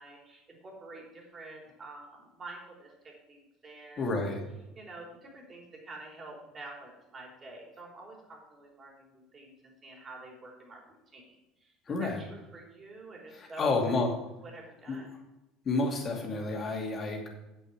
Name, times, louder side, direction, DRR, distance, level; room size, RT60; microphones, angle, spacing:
voice 1, 0.0-4.1 4.7-9.5 9.8-11.7 12.0-13.7 14.4-15.1, right 2 dB, 30° right, -1 dB, 3.6 m, -48 dB
voice 2, 4.0-4.4 11.9-12.2 13.4-14.1 14.9-15.0 15.6-17.3, left 3 dB, 40° left, 1 dB, 2.4 m, -30 dB
8.3 x 8.0 x 4.9 m, 0.99 s
hypercardioid pair, 70°, 0 cm